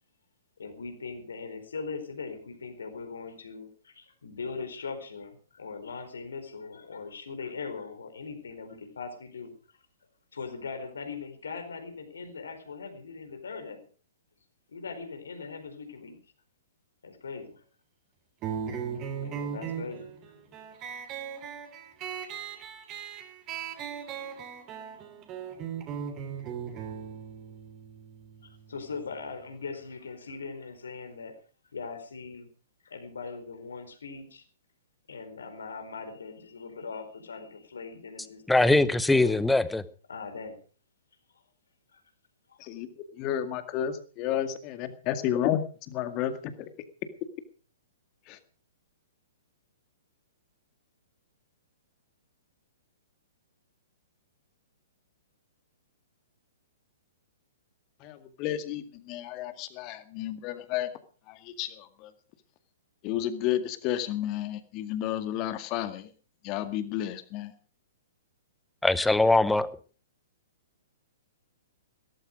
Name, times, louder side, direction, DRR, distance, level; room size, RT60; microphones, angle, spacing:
voice 1, 0.6-9.5 10.3-13.8 14.7-16.2 17.0-17.6 19.2-20.5 28.4-31.3 31.7-32.5 32.8-34.4 35.1-39.4 40.1-40.6 41.9-42.0 42.5-42.6, left 4 dB, 65° left, 7 dB, 4.4 m, -40 dB
sound 1, 18.4-29.5, right 8 dB, 30° right, 3.3 m, -38 dB
voice 2, 38.5-39.8 68.8-69.7, left 2 dB, 5° left, 17 dB, 0.9 m, -22 dB
voice 3, 43.1-46.7 48.3-48.4 58.0-60.9 61.3-62.1 63.0-66.1 66.4-67.5, left 11 dB, 30° left, 10 dB, 2.0 m, -32 dB
17.0 x 14.5 x 5.0 m, 0.40 s
figure-of-eight pair, 115°, 0 cm